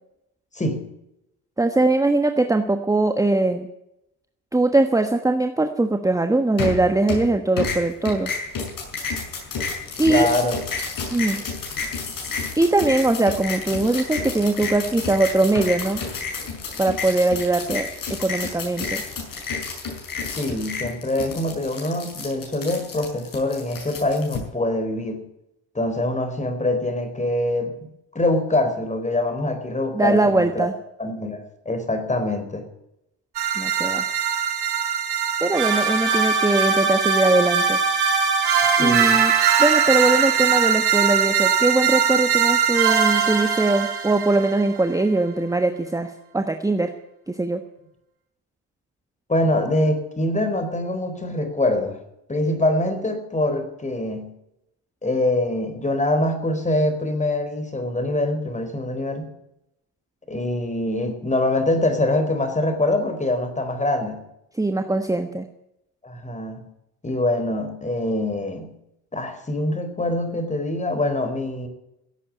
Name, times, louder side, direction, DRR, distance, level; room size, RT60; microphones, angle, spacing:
voice 1, 1.6-3.7 4.5-8.3 10.0-10.3 11.1-11.4 12.6-16.0 16.8-17.9 18.2-19.0 29.9-30.7 33.6-34.0 35.4-37.8 38.8-39.3 39.6-46.9 47.3-47.6 64.5-65.5, right 2 dB, 10° right, 7 dB, 1.2 m, -21 dB
sound 1, 6.6-7.3 7.6-24.4, left 5 dB, 55° left, 6.9 m, -30 dB
voice 2, 10.1-10.6 20.3-25.2 25.7-27.9 28.1-30.7 31.0-32.7 38.8-39.2 49.3-52.0 52.3-54.3 55.0-59.3 60.3-64.2 66.0-66.7 67.0-68.7 69.1-71.7, left 1 dB, 20° left, 8 dB, 4.2 m, -24 dB
sound 2, 33.3-44.6, right 7 dB, 75° right, 4.3 m, -21 dB
16.5 x 8.5 x 9.8 m, 0.84 s
cardioid pair, 95°, 38 cm